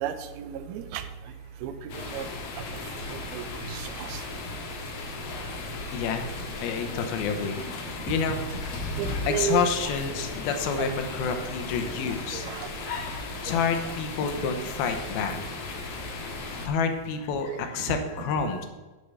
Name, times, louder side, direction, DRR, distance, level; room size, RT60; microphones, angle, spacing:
voice 1, 0.0-1.0 1.6-2.3 3.1-4.2 8.9-9.9 10.8-10.9 12.1-12.7 13.5-13.7 17.9-18.0, right 8 dB, 85° right, 10 dB, 2.7 m, -33 dB
sound 1, 1.9-16.7, left 3 dB, 55° left, 1.9 m, -36 dB
voice 2, 5.9-6.3 6.6-8.5 9.3-12.5 13.4-15.4 16.6-18.7, left 5 dB, 80° left, 6 dB, 2.8 m, -28 dB
8.6 x 6.6 x 6.6 m, 1.2 s
omnidirectional pair, 4.3 m